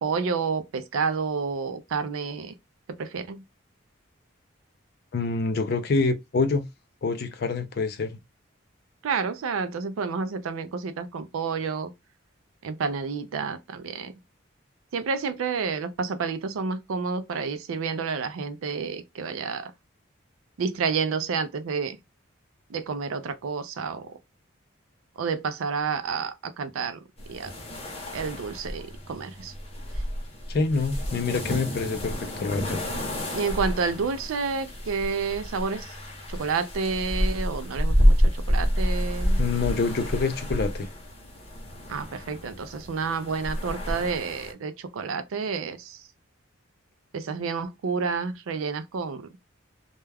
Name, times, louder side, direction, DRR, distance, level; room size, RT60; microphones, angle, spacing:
voice 1, 0.0-2.5 2.9-3.4 9.0-11.9 12.6-14.1 14.9-19.7 20.6-22.0 22.7-24.2 25.2-27.0 27.3-27.5 28.1-29.5 33.3-36.0 36.3-39.4 41.9-46.0 47.1-49.3, right 5 dB, 85° right, 0.4 m, -30 dB
voice 2, 5.1-6.7 7.0-8.2 30.5-32.8 39.4-40.9, left 4 dB, 50° left, 0.4 m, -26 dB
sound 1, 27.2-44.5, equal, 30° left, 0.8 m, -29 dB
2.2 x 2.2 x 3.3 m
head